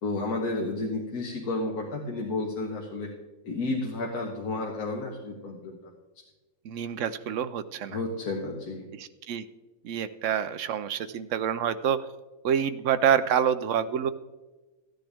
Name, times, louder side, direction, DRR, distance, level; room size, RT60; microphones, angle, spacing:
voice 1, 0.0-3.1 3.4-5.8 7.9-8.9, left 2 dB, 80° left, 0 dB, 1.7 m, -31 dB
voice 2, 6.6-8.0 8.9-9.4 9.8-12.1 12.4-14.1, right 8 dB, 65° right, 12 dB, 0.8 m, -27 dB
15.0 x 10.0 x 3.4 m, 1.2 s
omnidirectional pair, 1.6 m